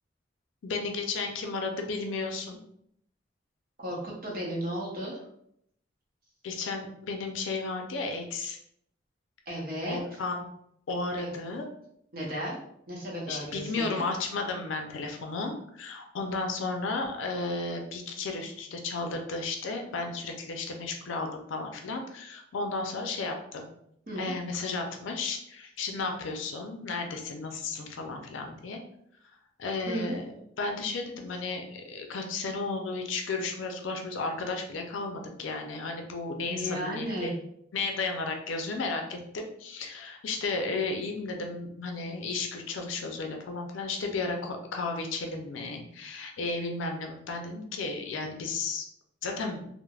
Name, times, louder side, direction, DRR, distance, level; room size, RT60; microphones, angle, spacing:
voice 1, 0.6-2.6 6.4-8.6 9.8-10.4 10.9-11.7 13.3-23.7 24.2-28.8 29.6-30.3 30.6-37.3 37.7-48.9 49.2-49.7, left 3 dB, 80° left, 3 dB, 0.4 m, -33 dB
voice 2, 3.8-5.2 9.5-10.0 11.2-11.3 12.1-12.6 12.9-14.0 24.1-24.3 29.9-30.1 36.5-37.3, equal, 50° right, -3 dB, 0.7 m, -34 dB
3.2 x 2.0 x 2.3 m, 0.71 s
head